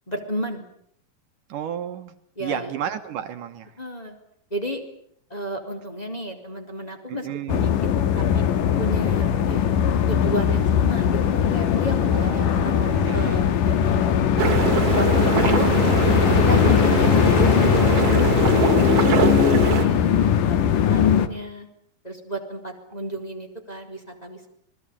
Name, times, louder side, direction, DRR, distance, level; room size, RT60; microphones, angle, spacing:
voice 1, 0.1-0.6 2.4-2.7 3.8-4.1 4.5-4.8 5.3-7.7 8.2-8.4 8.8-9.6 10.1-15.7 16.5-18.4 19.2-21.7 22.0-24.5, right 1 dB, 10° left, 2 dB, 4.0 m, -33 dB
voice 2, 1.5-2.1 2.4-3.7 7.1-7.6 12.1-13.4 16.6-16.8 19.3-20.1, right 10 dB, 70° right, 8 dB, 2.8 m, -33 dB
sound 1, 7.5-21.3, left 9 dB, 75° left, 3.0 m, -20 dB
sound 2, 14.4-19.9, right 7 dB, 50° right, 3.0 m, -23 dB
29.0 x 20.5 x 8.7 m, 0.67 s
omnidirectional pair, 3.9 m